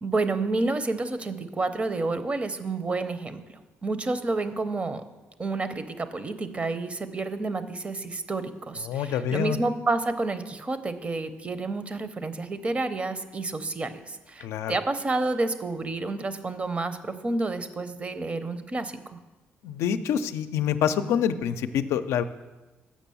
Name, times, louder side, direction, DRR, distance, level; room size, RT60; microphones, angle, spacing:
voice 1, 0.0-3.4 3.8-5.0 5.4-19.2, right 3 dB, 30° right, 11 dB, 0.7 m, -29 dB
voice 2, 8.8-9.6 14.4-14.8 19.6-22.2, left 9 dB, 85° left, 10 dB, 0.4 m, -26 dB
7.4 x 6.0 x 7.0 m, 1.1 s
cardioid pair, 95°, 5 cm